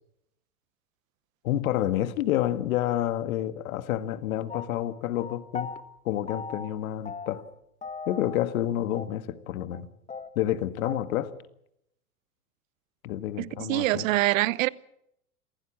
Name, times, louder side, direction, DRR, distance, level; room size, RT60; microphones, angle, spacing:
voice 1, 1.4-5.7 6.1-7.4 8.1-9.9 10.4-11.3 13.0-14.1, left 12 dB, 65° left, 1.8 m, -29 dB
sound 1, 4.5-5.8 6.3-6.8 7.0-7.5 7.8-8.6 8.9-9.1 9.3-9.4 9.7-9.8 10.1-11.0, left 5 dB, 15° left, 1.7 m, -38 dB
voice 2, 13.4-14.7, right 18 dB, 60° right, 0.9 m, -25 dB
27.5 x 15.5 x 7.4 m
hypercardioid pair, 100°, 46 cm